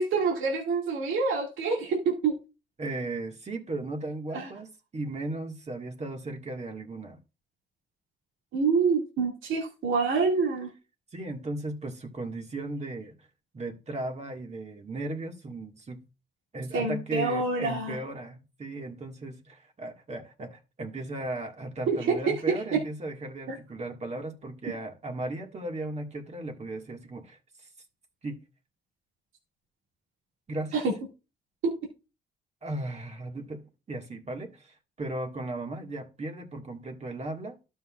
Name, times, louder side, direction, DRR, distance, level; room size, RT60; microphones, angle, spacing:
voice 1, 0.0-2.4 4.3-4.5 8.5-10.7 16.7-18.0 21.9-22.0 30.7-30.8, right 4 dB, 80° right, 2.3 m, -26 dB
voice 2, 2.8-7.2 11.1-13.3 13.5-16.0 16.5-27.7 28.2-28.4 30.5-30.8 32.6-37.6, right 2 dB, 35° right, 1.9 m, -36 dB
12.5 x 5.7 x 2.5 m
cardioid pair, 90°, 20 cm